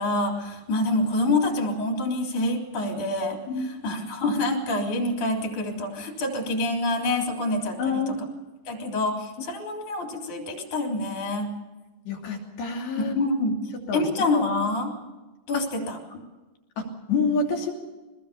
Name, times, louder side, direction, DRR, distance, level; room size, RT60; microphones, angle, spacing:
voice 1, 0.0-8.2 8.7-11.5 13.0-14.9 15.5-16.2, left 2 dB, 50° left, 2 dB, 5.0 m, -27 dB
voice 2, 3.5-3.8 7.8-8.4 12.1-13.2 13.9-14.0 16.8-17.7, left 4 dB, 80° left, 1 dB, 4.9 m, -28 dB
23.5 x 20.0 x 7.0 m, 1.2 s
omnidirectional pair, 4.4 m